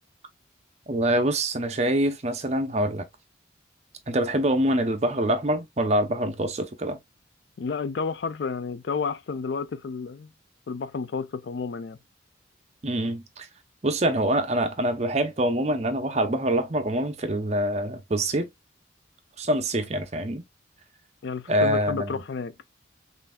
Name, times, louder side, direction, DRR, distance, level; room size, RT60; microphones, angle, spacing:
voice 1, 0.9-3.0 4.1-7.0 12.8-13.5 13.8-18.5 19.4-20.4 21.5-22.2, right 1 dB, 35° right, 0.6 m, -25 dB
voice 2, 7.6-10.3 10.7-12.0 21.2-22.6, left 5 dB, 60° left, 0.3 m, -31 dB
5.6 x 2.5 x 2.2 m
head